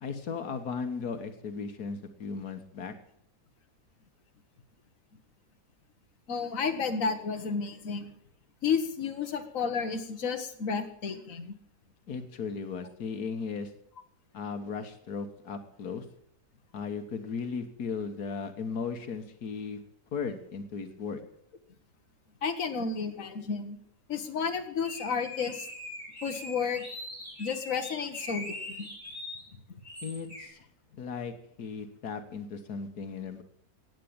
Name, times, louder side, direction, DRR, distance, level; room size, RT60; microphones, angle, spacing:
voice 1, 0.0-2.9 12.1-13.7 14.3-16.1 16.7-19.8 20.1-21.2 30.0-30.7 31.0-33.4, left 5 dB, 85° left, 7 dB, 1.8 m, -36 dB
voice 2, 6.3-8.1 8.6-11.5 22.4-23.8 24.1-25.7 26.2-26.8 27.4-28.9, left 5 dB, 60° left, 6 dB, 1.8 m, -32 dB
sound 1, 24.8-29.4 29.8-30.5, left 1 dB, 25° left, 5.0 m, -42 dB
16.0 x 9.3 x 8.7 m, 0.70 s
omnidirectional pair, 1.6 m